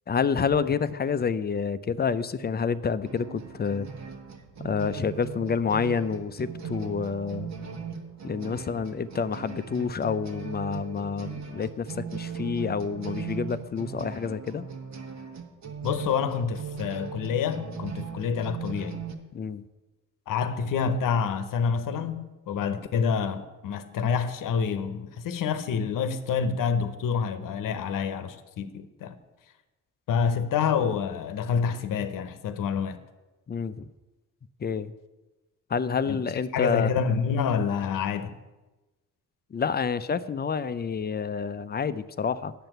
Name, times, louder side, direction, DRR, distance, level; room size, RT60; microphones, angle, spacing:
voice 1, 0.1-3.9 4.6-7.5 8.2-14.7 19.3-19.6 33.5-33.9 34.6-34.9 35.7-36.9 39.5-42.5, left 6 dB, 30° left, 0.5 m, -28 dB
sound 1, 3.1-19.1, right 6 dB, 60° right, 1.3 m, -38 dB
voice 2, 15.8-19.0 20.3-29.2 30.1-33.0 36.1-36.2 36.5-38.4, left 6 dB, 80° left, 0.9 m, -27 dB
9.0 x 6.8 x 7.9 m
cardioid pair, 90°, 32 cm